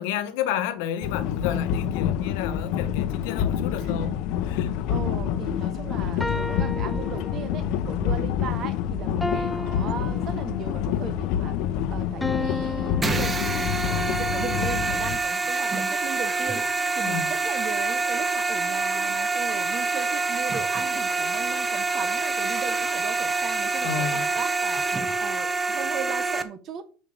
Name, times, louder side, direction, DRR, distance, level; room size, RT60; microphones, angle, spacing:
voice 1, 0.0-4.1 4.5-4.7 9.4-9.6 17.0-17.3 23.8-24.3, left 9 dB, 80° left, 1.2 m, -31 dB
sound 1, 1.0-15.2, left 9 dB, 60° left, 0.7 m, -27 dB
voice 2, 3.8-4.1 4.9-11.5 11.9-16.6 17.0-24.8 25.2-26.8, right 8 dB, 40° right, 0.9 m, -37 dB
sound 2, 6.2-7.8 9.2-10.9 12.2-14.1, left 2 dB, 5° left, 0.5 m, -33 dB
sound 3, 13.0-26.4, right 3 dB, 15° right, 0.8 m, -26 dB
7.2 x 5.2 x 6.5 m
cardioid pair, 145°, 0 cm